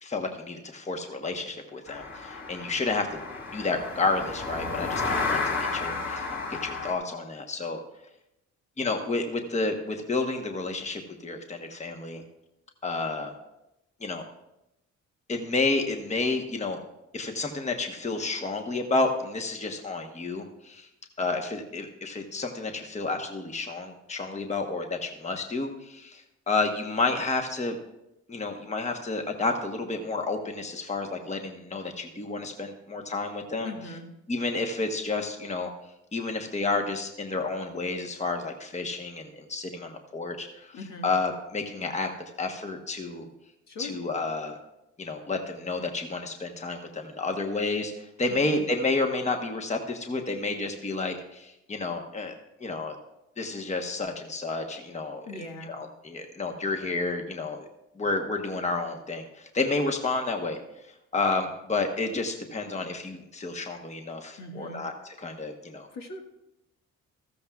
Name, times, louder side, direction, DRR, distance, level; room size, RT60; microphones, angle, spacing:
voice 1, 0.0-3.1 3.5-7.8 8.8-12.2 12.8-13.3 14.0-14.2 15.3-16.8 17.1-20.9 21.2-27.7 28.3-33.7 34.3-35.7 36.1-40.8 41.0-42.1 42.4-43.3 43.8-44.5 45.0-52.3 52.6-53.0 53.4-55.3 55.7-57.7 58.0-60.6 61.1-64.9 65.2-65.9, left 3 dB, 25° left, 4 dB, 1.1 m, -30 dB
sound 1, 1.9-6.9, left 4 dB, 40° left, 3.3 m, -32 dB
voice 2, 33.6-34.1 40.7-41.1 43.7-44.0 48.3-48.6 55.2-55.8 64.4-64.8 65.9-66.2, left 2 dB, 65° left, 2 dB, 1.8 m, -40 dB
14.0 x 13.5 x 2.4 m, 0.89 s
cardioid pair, 90°, 30 cm